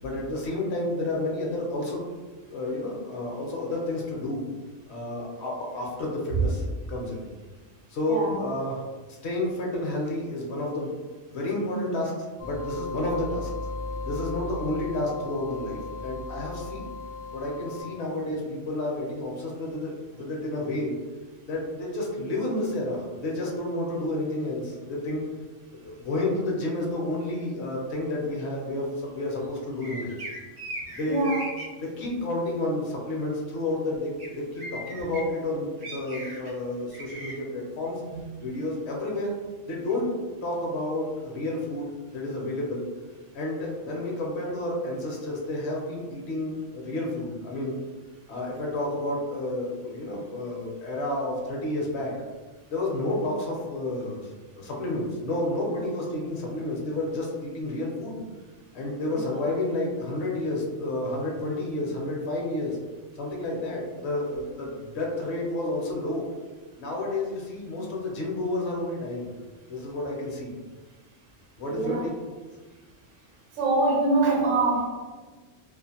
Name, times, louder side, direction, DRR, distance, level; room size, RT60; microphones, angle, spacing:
voice 1, 0.0-2.0 2.5-4.4 4.9-7.2 7.9-8.8 9.1-10.9 11.3-13.5 14.0-16.8 17.3-21.0 21.5-25.2 25.8-30.1 30.9-31.3 31.8-38.0 38.4-39.3 39.7-40.1 40.4-42.8 43.3-47.8 48.3-52.1 52.7-54.2 54.5-58.2 58.7-62.8 63.2-66.3 66.8-69.3 69.7-70.5 71.6-72.0, left 1 dB, 65° left, -2 dB, 0.9 m, -30 dB
sound 1, 12.4-17.8, left 3 dB, 45° left, 0.5 m, -36 dB
sound 2, 29.8-31.6 34.2-34.3 34.6-35.2 35.8-36.5 36.9-37.3, right 1 dB, 50° right, 0.5 m, -37 dB
voice 2, 31.1-31.4 38.1-38.3 71.6-72.0 73.5-74.9, right 2 dB, 70° right, -1 dB, 0.9 m, -24 dB
2.5 x 2.4 x 2.7 m, 1.3 s
omnidirectional pair, 1.3 m